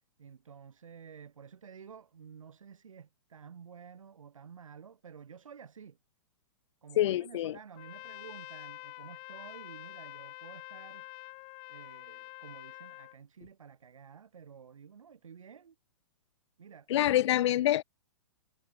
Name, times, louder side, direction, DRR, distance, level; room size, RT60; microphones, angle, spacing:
voice 1, 0.2-6.0 6.8-11.1 11.7-15.8 16.6-17.2, right 7 dB, 90° right, 1.9 m, -51 dB
voice 2, 7.0-7.6 16.9-17.8, left 13 dB, 60° left, 0.5 m, -26 dB
Trumpet, 7.7-13.2, left 27 dB, 35° left, 0.8 m, -47 dB
hypercardioid pair, 135°, 16 cm